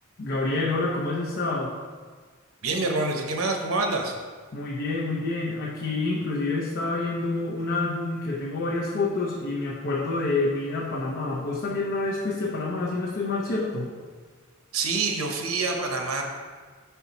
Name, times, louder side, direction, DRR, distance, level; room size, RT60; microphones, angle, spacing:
voice 1, 0.2-1.8 4.5-13.9, left 3 dB, 55° left, -5 dB, 0.7 m, -28 dB
voice 2, 2.6-4.1 14.7-16.2, right 3 dB, 85° right, 3 dB, 0.8 m, -26 dB
5.6 x 4.5 x 4.0 m, 1.5 s
head